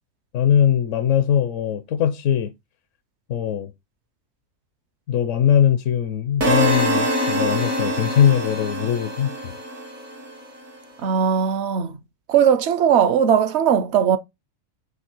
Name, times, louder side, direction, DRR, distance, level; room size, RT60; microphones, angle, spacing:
voice 1, 0.3-2.5 3.3-3.7 5.1-9.5, left 9 dB, 70° left, 1.0 m, -20 dB
sound 1, 6.4-10.5, equal, 90° right, 2.7 m, -24 dB
voice 2, 11.0-12.0 12.3-14.2, right 8 dB, 60° right, 0.9 m, -18 dB
8.1 x 2.7 x 4.4 m
omnidirectional pair, 1.4 m